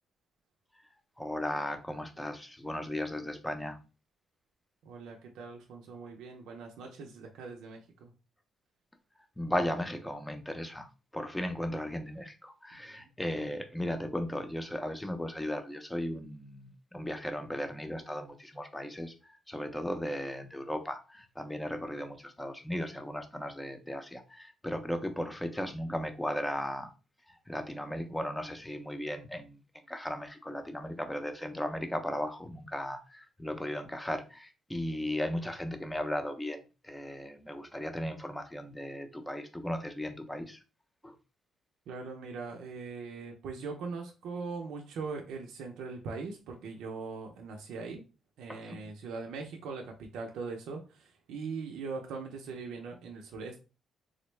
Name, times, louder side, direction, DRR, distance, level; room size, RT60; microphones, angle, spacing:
voice 1, 1.2-3.8 9.4-10.9 11.1-19.1 19.5-26.9 27.5-29.6 29.9-40.6 41.0-41.2 48.5-48.8, left 1 dB, 10° left, 0.6 m, -36 dB
voice 2, 4.8-8.1 12.7-13.1 41.9-48.0 48.4-53.6, right 4 dB, 85° right, 0.5 m, -41 dB
3.7 x 2.1 x 3.1 m
cardioid pair, 90°, 0 cm